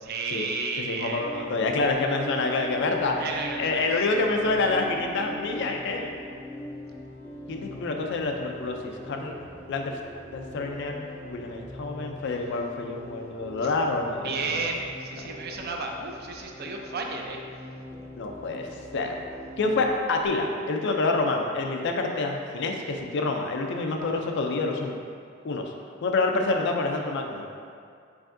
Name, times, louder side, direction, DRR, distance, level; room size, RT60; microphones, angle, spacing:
voice 1, 0.0-1.5 3.2-4.1 13.6-13.7 14.2-17.4, right 3 dB, 50° right, 2 dB, 0.4 m, -33 dB
voice 2, 0.8-6.1 7.5-9.3 9.7-10.0 10.3-14.6 15.2-15.3 18.2-18.7 18.9-19.1 19.6-24.9 25.4-25.7 26.0-27.5, left 3 dB, 60° left, 3 dB, 0.4 m, -27 dB
sound 1, 1.1-19.9, left 1 dB, 10° left, 0.5 m, -42 dB
4.7 x 3.4 x 2.6 m, 2.3 s
head